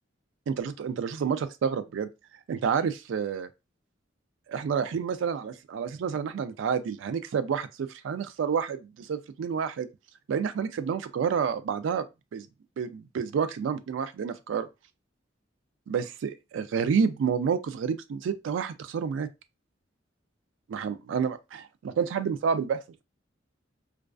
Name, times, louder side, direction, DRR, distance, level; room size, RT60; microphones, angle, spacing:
voice 1, 0.5-2.1 2.5-3.5 4.5-9.9 10.3-12.1 12.3-12.5 12.8-14.7 15.9-19.3 20.7-23.0, right 6 dB, 75° right, 0.3 m, -29 dB
2.3 x 2.3 x 2.3 m
head